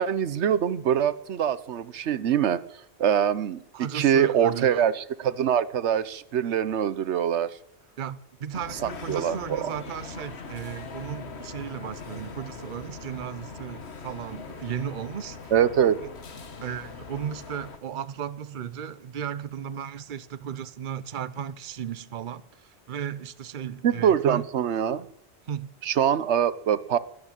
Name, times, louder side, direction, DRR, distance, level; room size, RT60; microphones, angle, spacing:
voice 1, 0.0-2.6 3.0-3.6 3.9-7.6 8.8-9.7 15.5-16.0 23.8-25.1 25.8-27.0, right 9 dB, 90° right, 1.1 m, -24 dB
voice 2, 3.7-4.9 8.0-15.5 16.6-24.5 25.4-25.8, right 8 dB, 50° right, 0.9 m, -35 dB
sound 1, 8.5-17.8, left 5 dB, 70° left, 1.6 m, -41 dB
13.0 x 11.5 x 8.8 m
omnidirectional pair, 1.1 m